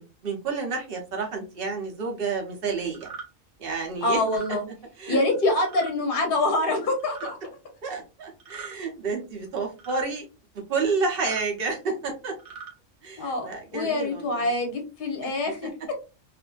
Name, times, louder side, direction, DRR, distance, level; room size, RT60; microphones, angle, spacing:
voice 1, 0.0-3.1 3.6-4.2 5.0-5.2 7.8-10.3 10.7-12.3 13.0-14.5 15.2-15.3 15.6-15.7, right 4 dB, 55° right, 2 dB, 0.9 m, -30 dB
sound 1, 2.9-3.3 4.2-4.6 5.6-5.9 7.0-7.3 8.4-8.8 9.8-10.1 11.1-11.5 12.3-12.7, right 6 dB, 70° right, 1.2 m, -41 dB
voice 2, 4.0-4.6 5.1-7.4 13.2-15.9, left 2 dB, 50° left, 3 dB, 0.8 m, -25 dB
2.6 x 2.5 x 2.2 m, 0.31 s
omnidirectional pair, 1.3 m